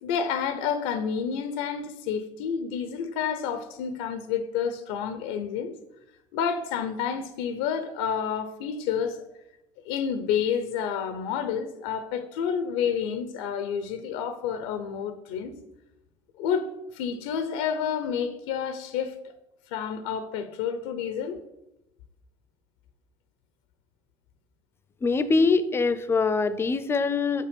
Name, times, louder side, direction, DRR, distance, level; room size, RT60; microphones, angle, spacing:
voice 1, 0.0-5.7 6.3-9.2 9.8-15.5 16.4-16.7 16.9-19.2 19.7-21.4, left 7 dB, 90° left, 0.7 m, -29 dB
voice 2, 25.0-27.5, left 4 dB, 25° left, 0.5 m, -23 dB
7.5 x 4.9 x 5.2 m
supercardioid pair, 105°, 11 cm